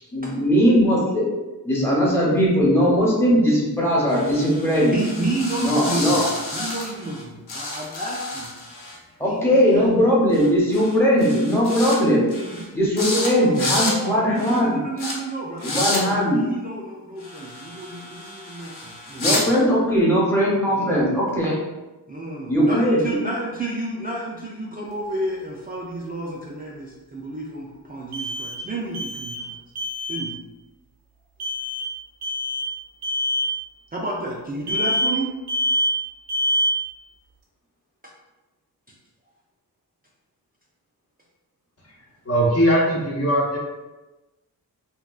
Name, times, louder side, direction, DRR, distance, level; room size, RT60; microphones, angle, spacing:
voice 1, 0.1-1.3 1.6-4.9 5.6-6.2 9.2-12.3 12.7-14.8 15.6-16.4 19.2-21.6 22.5-23.2, equal, 5° left, -6 dB, 0.8 m, -19 dB
sound 1, 4.1-7.2 7.5-9.0 10.3-10.5 10.7-11.0 11.2-12.0 12.3-12.6 13.0-13.3 13.5-13.9 14.4-14.6 15.0-15.1 15.6-16.0 17.2-19.4, left 2 dB, 85° left, 0.9 m, -30 dB
voice 2, 4.9-6.3 6.5-8.5 9.2-9.8 12.5-19.5 20.7-21.2 22.1-29.5 30.1-30.4 33.9-35.3, right 2 dB, 25° right, -5 dB, 0.3 m, -31 dB
sound 2, 24.9-25.0 28.1-29.5 29.8-30.3 31.4-31.9 32.2-32.7 33.0-33.5 34.7-35.2 35.5-36.0 36.3-36.9, equal, 80° right, 0.6 m, -25 dB
voice 3, 42.3-43.6, equal, 40° left, -4 dB, 0.7 m, -19 dB
3.5 x 2.3 x 2.3 m, 1.1 s
wide cardioid pair, 130°, 38 cm